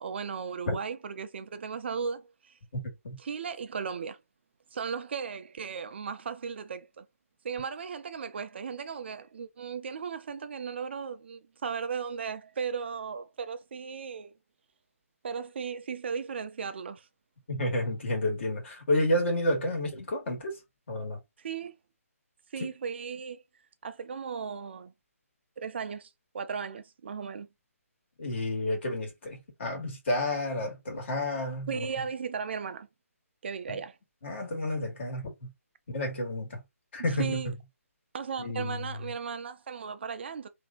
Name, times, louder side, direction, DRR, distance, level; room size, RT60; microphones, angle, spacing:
voice 1, 0.0-2.6 3.2-4.2 4.7-7.1 7.4-14.3 15.2-17.1 21.4-21.7 22.5-23.4 23.8-24.9 25.6-27.5 31.7-32.9 33.4-34.0 37.1-37.5 38.1-40.5, right 6 dB, 45° right, 0.5 m, -36 dB
voice 2, 17.5-20.6 20.9-21.2 22.6-22.7 28.2-31.9 33.7-33.8 34.2-35.5 35.9-36.6 36.9-37.4 38.4-38.9, left 1 dB, 50° left, 2.1 m, -30 dB
3.4 x 2.7 x 3.6 m
hypercardioid pair, 160°, 8 cm